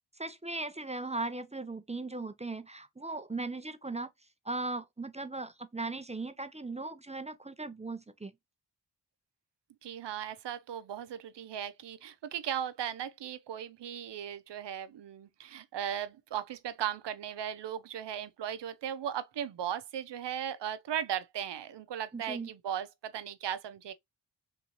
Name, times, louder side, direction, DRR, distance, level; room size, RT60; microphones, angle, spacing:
voice 1, 0.2-4.1 4.4-8.3 22.1-22.5, right 3 dB, 15° right, 0.6 m, -38 dB
voice 2, 9.8-23.9, right 9 dB, 90° right, 0.6 m, -37 dB
3.6 x 2.7 x 2.9 m
cardioid pair, 40°, 41 cm